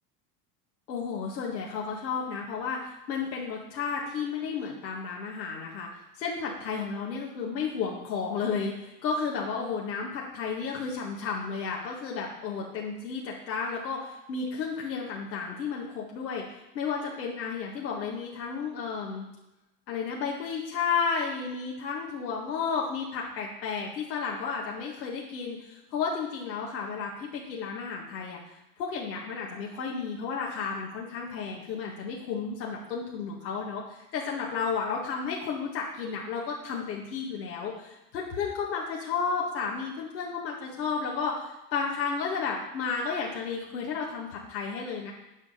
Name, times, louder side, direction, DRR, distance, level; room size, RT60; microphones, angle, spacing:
voice 1, 0.9-5.9 6.1-19.3 19.9-28.4 28.8-45.1, left 5 dB, 85° left, -3 dB, 1.9 m, -32 dB
9.5 x 5.1 x 5.7 m, 0.96 s
hypercardioid pair, 95°, 49 cm